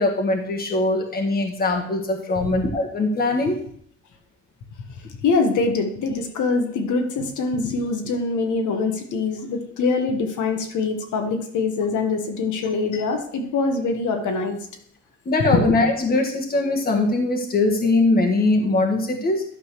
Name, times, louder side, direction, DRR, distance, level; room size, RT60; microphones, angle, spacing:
voice 1, 0.0-3.6 15.2-19.4, left 2 dB, 30° left, 1.5 m, -21 dB
voice 2, 5.2-14.6 15.4-15.6, left 4 dB, 70° left, 1.5 m, -24 dB
12.0 x 4.0 x 6.7 m
cardioid pair, 170°, 31 cm